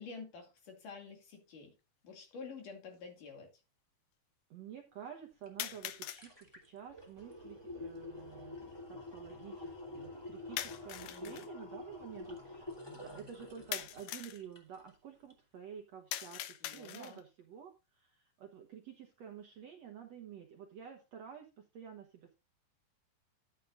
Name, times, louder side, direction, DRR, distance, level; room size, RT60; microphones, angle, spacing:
voice 1, 0.0-1.7 2.0-3.5 11.1-11.4 16.6-17.2, left 4 dB, 60° left, 3.9 m, -49 dB
sound 1, 1.2-1.3 2.3-2.4 5.6-6.3 10.6-11.5 13.7-14.4 16.1-17.3, left 13 dB, 75° left, 2.0 m, -42 dB
voice 2, 4.5-8.6 8.9-22.4, right 8 dB, 70° right, 1.7 m, -50 dB
sound 2, 5.5-5.6 5.9-14.9 15.3-15.4, left 2 dB, 10° left, 2.2 m, -48 dB
13.0 x 9.2 x 2.6 m
omnidirectional pair, 4.4 m